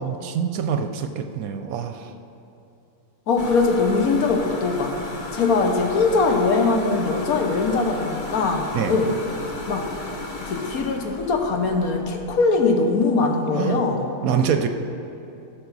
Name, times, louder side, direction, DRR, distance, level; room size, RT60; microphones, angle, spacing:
voice 1, 0.0-2.1 8.7-9.0 13.5-13.8 14.2-14.7, right 7 dB, 70° right, 7 dB, 0.9 m, -25 dB
voice 2, 3.3-4.9 5.3-9.1 9.7-9.9 10.4-14.1, left 4 dB, 70° left, 3 dB, 1.3 m, -21 dB
sound 1, 3.4-12.3, left 2 dB, 40° left, 0.9 m, -34 dB
15.0 x 6.0 x 4.0 m, 2.8 s
omnidirectional pair, 1.6 m